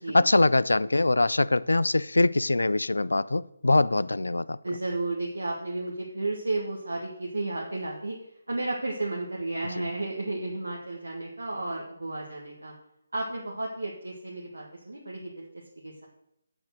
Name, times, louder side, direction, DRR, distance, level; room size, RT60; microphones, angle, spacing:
voice 1, 0.1-4.6 9.8-9.9, left 2 dB, 70° left, 0.3 m, -23 dB
voice 2, 4.6-8.2 8.5-12.7 13.1-15.5 15.8-16.1, right 2 dB, 75° right, 1.7 m, -33 dB
7.8 x 7.2 x 6.4 m
figure-of-eight pair, 145°, 0 cm